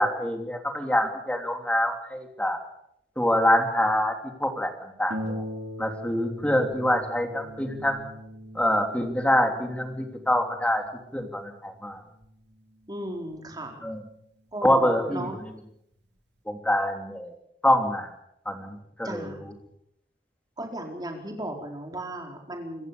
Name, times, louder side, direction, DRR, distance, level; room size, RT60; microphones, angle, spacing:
voice 1, 0.0-2.6 3.2-4.1 4.4-5.4 5.8-8.1 8.5-10.8 11.1-12.0 13.8-14.0 14.6-15.2 16.5-17.3 17.6-18.1 18.4-19.2, left 1 dB, 5° left, 5 dB, 3.2 m, -25 dB
Harp, 5.1-14.3 15.1-15.2 15.7-15.8, equal, 75° right, 3.3 m, -41 dB
voice 2, 12.9-13.8 14.5-15.4 19.0-19.4 20.6-22.9, right 1 dB, 25° right, 2 dB, 4.4 m, -35 dB
26.5 x 14.5 x 6.9 m, 0.75 s
head